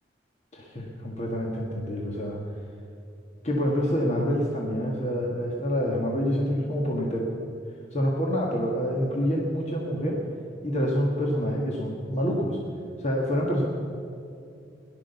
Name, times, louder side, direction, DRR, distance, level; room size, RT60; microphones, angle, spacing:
voice 1, 0.5-2.4 3.4-7.3 7.9-10.2 10.6-12.6 13.0-13.6, equal, 40° left, -2 dB, 1.7 m, -27 dB
17.5 x 11.5 x 7.0 m, 2.6 s
head